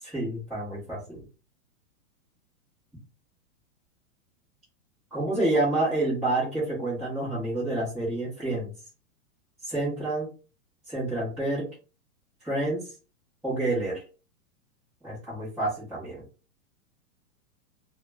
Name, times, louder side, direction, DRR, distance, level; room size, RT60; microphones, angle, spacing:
voice 1, 0.1-1.2 5.1-8.7 9.6-10.3 10.9-11.7 12.4-12.8 13.4-14.0 15.0-16.2, right 2 dB, ahead, -13 dB, 0.5 m, -28 dB
2.0 x 2.0 x 3.3 m, 0.34 s
hypercardioid pair, 145°, 43 cm